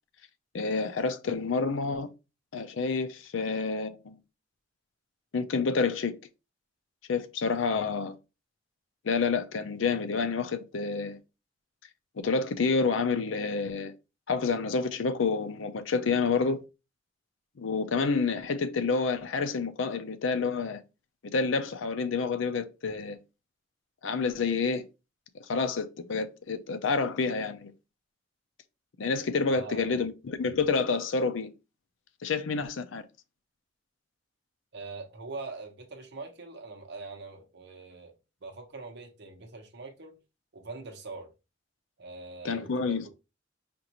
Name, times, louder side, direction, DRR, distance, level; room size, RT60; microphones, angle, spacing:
voice 1, 0.5-2.1 2.5-4.2 5.3-6.1 7.1-8.2 9.0-11.2 12.2-13.9 14.3-16.6 17.6-20.8 21.3-23.2 24.0-24.8 25.5-27.7 29.0-31.5 32.2-33.0 42.4-43.1, left 4 dB, 85° left, 0.5 m, -28 dB
voice 2, 29.5-30.1 34.7-40.2 40.5-41.3 42.0-43.1, right 3 dB, 60° right, 0.9 m, -43 dB
5.2 x 2.5 x 2.9 m
head